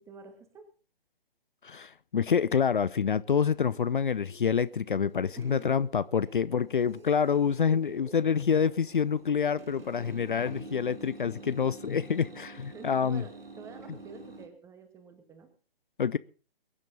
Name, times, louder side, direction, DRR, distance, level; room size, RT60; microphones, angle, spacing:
voice 1, 0.1-0.7 5.3-5.8 6.2-6.6 7.7-8.2 12.7-13.3 13.6-15.5, right 5 dB, 10° right, 7 dB, 2.2 m, -48 dB
voice 2, 1.6-13.2 16.0-16.2, left 7 dB, 60° left, 18 dB, 0.6 m, -27 dB
sound 1, 2.8-14.5, right 3 dB, 75° right, 3.4 m, -49 dB
22.5 x 10.5 x 4.2 m, 0.37 s
figure-of-eight pair, 135°, 29 cm